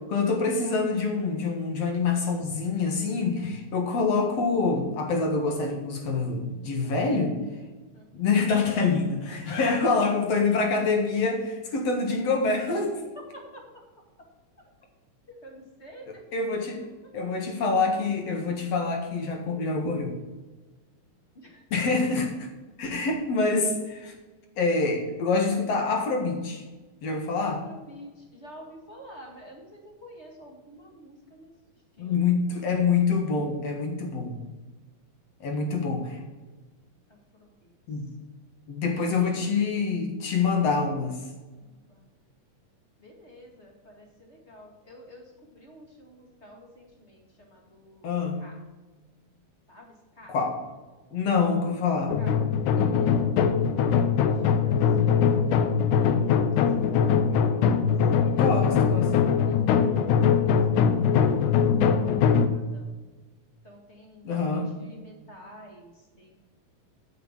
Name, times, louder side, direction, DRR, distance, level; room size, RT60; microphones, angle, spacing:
voice 1, 0.1-7.3 8.1-13.0 16.1-16.8 17.1-20.1 21.7-22.5 22.8-24.1 24.6-26.6 27.0-27.6 32.0-34.4 35.4-36.2 37.9-38.1 38.7-41.2 48.0-48.4 50.3-50.6 51.1-52.1 58.4-59.1 64.2-64.7, left 4 dB, 60° left, 3 dB, 2.6 m, -26 dB
voice 2, 6.8-7.1 7.9-8.1 13.3-13.8 14.2-14.3 15.3-16.2 21.3-21.6 27.3-31.5 32.0-32.2 35.5-35.9 37.1-37.7 39.0-39.5 41.6-42.1 43.0-48.1 48.4-48.6 49.7-50.3 52.2-52.3 52.8-57.9 58.2-60.6 60.8-61.4 61.7-62.9 63.6-66.3, equal, 25° left, 0 dB, 2.0 m, -49 dB
sound 1, 52.1-62.5, left 7 dB, 80° left, 2.3 m, -22 dB
9.3 x 6.9 x 7.3 m, 1.2 s
omnidirectional pair, 3.5 m